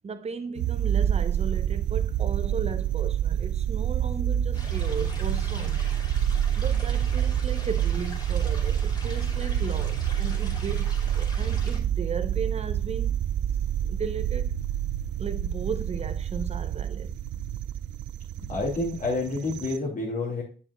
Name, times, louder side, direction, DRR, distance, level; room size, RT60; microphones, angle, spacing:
voice 1, 0.0-5.8 6.6-13.2 13.9-14.5 15.2-17.1, right 5 dB, 30° right, 0.9 m, -36 dB
sound 1, 0.6-19.8, right 10 dB, 65° right, 0.4 m, -27 dB
sound 2, 4.5-11.8, left 1 dB, 20° left, 2.6 m, -44 dB
voice 2, 18.4-20.4, left 2 dB, 40° left, 2.3 m, -29 dB
7.7 x 7.0 x 2.3 m
cardioid pair, 90°, 20 cm